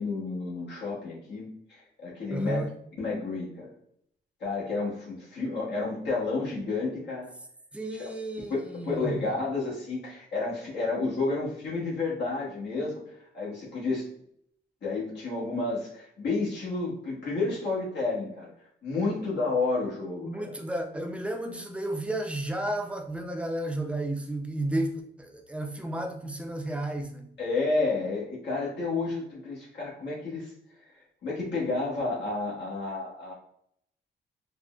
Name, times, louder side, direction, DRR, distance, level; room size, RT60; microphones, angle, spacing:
voice 1, 0.0-2.6 3.0-3.7 4.4-7.3 8.8-14.1 14.8-18.5 18.8-20.5 27.4-30.5 31.2-33.3, left 3 dB, 75° left, -5 dB, 1.0 m, -31 dB
voice 2, 2.3-2.7 7.7-9.3 20.2-27.3, right 1 dB, 5° right, 3 dB, 0.4 m, -32 dB
3.6 x 2.0 x 2.3 m, 0.69 s
cardioid pair, 110°, 18 cm